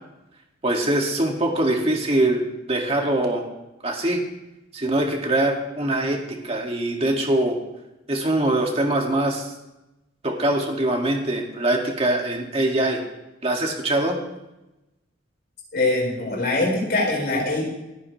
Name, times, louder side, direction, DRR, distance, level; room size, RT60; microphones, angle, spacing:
voice 1, 0.6-2.4 2.7-3.4 3.8-4.2 4.7-7.6 8.1-9.5 10.2-13.0 13.4-14.2, right 1 dB, 30° right, 1 dB, 2.2 m, -23 dB
voice 2, 15.7-17.7, left 2 dB, 55° left, -2 dB, 4.8 m, -23 dB
28.0 x 9.6 x 3.3 m, 0.96 s
head